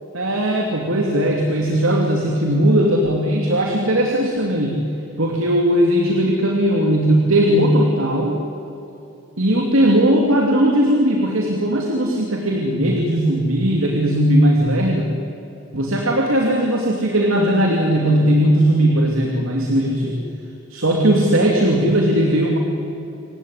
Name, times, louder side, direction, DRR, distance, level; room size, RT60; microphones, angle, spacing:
voice 1, 0.1-4.8 5.2-8.4 9.4-15.1 15.7-20.2 20.7-22.6, right 1 dB, 80° right, 1 dB, 2.7 m, -18 dB
27.0 x 16.0 x 9.9 m, 2.9 s
head